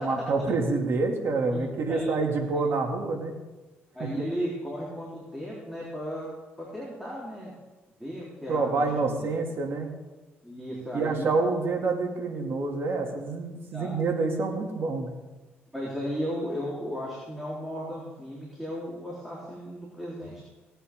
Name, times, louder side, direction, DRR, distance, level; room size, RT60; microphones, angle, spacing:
voice 1, 0.0-3.3 4.0-4.1 8.5-9.9 10.9-15.1, right 3 dB, 55° right, 2 dB, 2.6 m, -27 dB
voice 2, 1.5-2.1 2.5-2.6 3.9-6.3 6.6-7.6 8.0-9.3 10.4-11.3 13.7-14.0 15.7-20.4, equal, 5° right, -6 dB, 3.8 m, -35 dB
18.0 x 8.8 x 3.7 m, 1.2 s
supercardioid pair, 70°, 5 cm